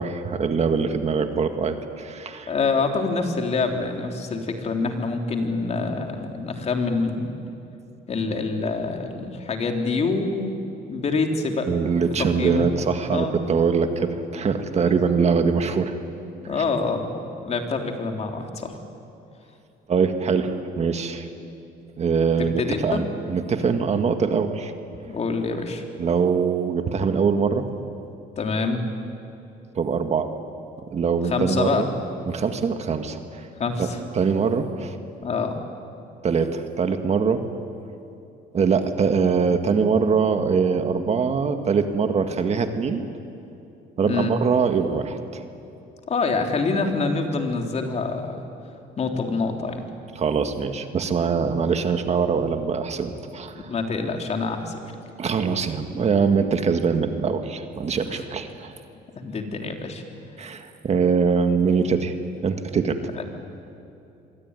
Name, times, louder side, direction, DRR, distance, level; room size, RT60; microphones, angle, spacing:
voice 1, 0.0-2.5 11.7-15.9 16.5-16.6 19.9-21.3 22.0-24.7 26.0-27.7 29.8-30.3 30.9-31.9 32.2-33.5 33.8-33.9 34.1-35.0 36.2-37.4 38.5-43.0 44.0-45.4 50.2-53.7 55.2-58.7 60.4-62.1 62.4-63.0, right 5 dB, 40° right, 7 dB, 1.9 m, -23 dB
voice 2, 2.5-7.3 8.1-10.6 10.9-11.7 12.4-12.7 13.1-13.4 14.8-15.0 16.5-17.1 17.4-18.8 22.4-23.0 25.1-25.8 28.4-28.8 31.2-31.9 33.6-34.0 35.2-35.6 44.0-44.3 46.1-48.4 49.0-49.8 53.7-54.9 58.1-58.2 59.2-60.0 63.2-63.3, left 4 dB, 40° left, 4 dB, 3.5 m, -26 dB
26.0 x 23.0 x 9.8 m, 2.7 s
cardioid pair, 110°, 17 cm